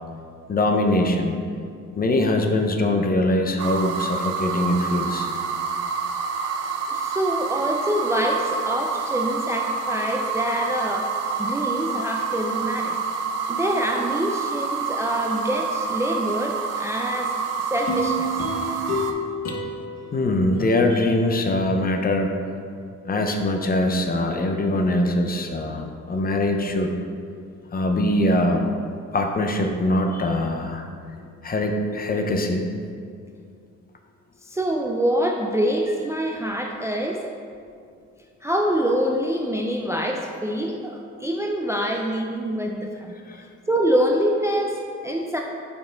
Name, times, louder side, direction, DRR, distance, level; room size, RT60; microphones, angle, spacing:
voice 1, 0.5-1.4 2.0-5.3 19.5-19.6 20.1-22.4 23.0-26.9 27.7-28.7 29.1-30.8 31.2-32.6 40.7-40.8 43.3-43.4, left 1 dB, 30° left, 4 dB, 0.6 m, -22 dB
sound 1, 3.6-19.1, right 5 dB, 55° right, 0.6 m, -27 dB
voice 2, 6.9-11.1 11.4-13.0 13.5-17.3 17.7-18.3 34.5-37.3 38.4-43.1 43.7-45.4, equal, 10° right, 1 dB, 0.4 m, -25 dB
sound 2, 17.9-21.2 21.6-21.7, equal, 65° left, 1.1 m, -30 dB
5.5 x 4.6 x 3.8 m, 2.3 s
cardioid pair, 90°, 30 cm